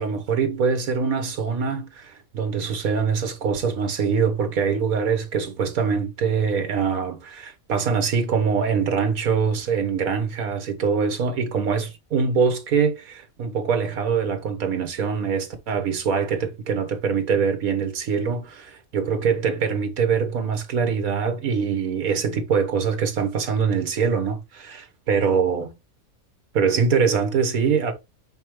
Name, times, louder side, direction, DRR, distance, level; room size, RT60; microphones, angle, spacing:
voice 1, 0.0-25.7 26.5-27.9, right 6 dB, 75° right, 1.7 m, -23 dB
5.6 x 5.6 x 3.1 m
omnidirectional pair, 1.5 m